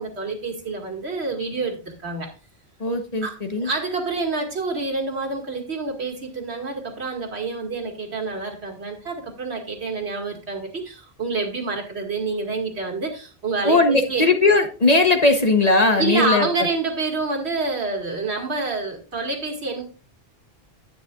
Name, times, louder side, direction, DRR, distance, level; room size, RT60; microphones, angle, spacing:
voice 1, 0.0-2.3 3.2-14.2 16.0-19.8, right 3 dB, 75° right, 2 dB, 2.4 m, -27 dB
voice 2, 2.8-3.7 13.6-16.7, left 2 dB, 40° left, 5 dB, 1.1 m, -18 dB
11.0 x 9.3 x 2.4 m, 0.34 s
omnidirectional pair, 1.1 m